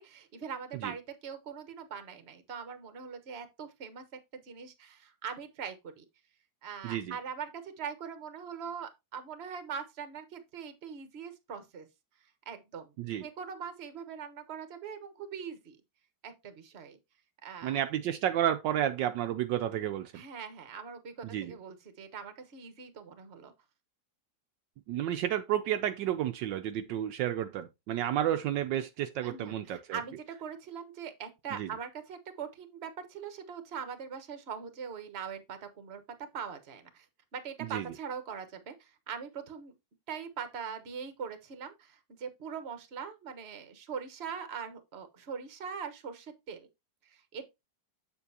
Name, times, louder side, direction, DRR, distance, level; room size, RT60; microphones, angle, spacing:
voice 1, 0.0-4.0 4.3-6.0 6.6-11.9 12.5-12.9 13.2-15.8 16.2-17.0 17.4-17.8 20.1-23.5 29.2-36.0 36.3-37.0 37.3-39.7 40.1-46.7 47.3-47.5, right 7 dB, 40° right, 1.2 m, -42 dB
voice 2, 6.8-7.2 13.0-13.3 17.6-20.2 21.2-21.5 24.9-30.0 31.5-31.7 37.6-37.9, right 11 dB, 75° right, 1.2 m, -31 dB
7.7 x 7.0 x 2.7 m
omnidirectional pair, 2.1 m